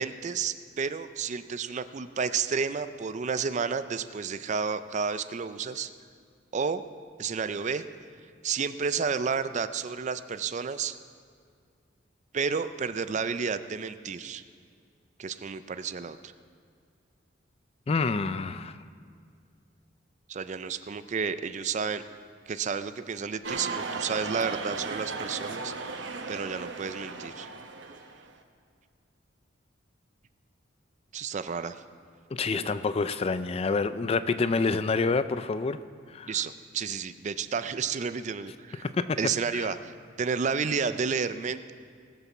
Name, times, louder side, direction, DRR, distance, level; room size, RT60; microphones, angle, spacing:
voice 1, 0.0-5.9 6.5-6.8 7.2-7.8 8.4-11.0 12.3-14.4 15.2-16.3 20.3-22.0 22.5-27.5 31.1-31.8 32.5-32.8 36.3-38.9 39.2-41.7, right 5 dB, 40° right, 12 dB, 0.4 m, -31 dB
voice 2, 17.9-18.8 32.3-35.8 36.1-36.3 38.8-39.2 39.5-39.7, left 4 dB, 30° left, 12 dB, 0.4 m, -27 dB
sound 1, 23.4-28.3, right 4 dB, 70° right, 0.9 m, -36 dB
19.5 x 6.9 x 6.0 m, 2.2 s
head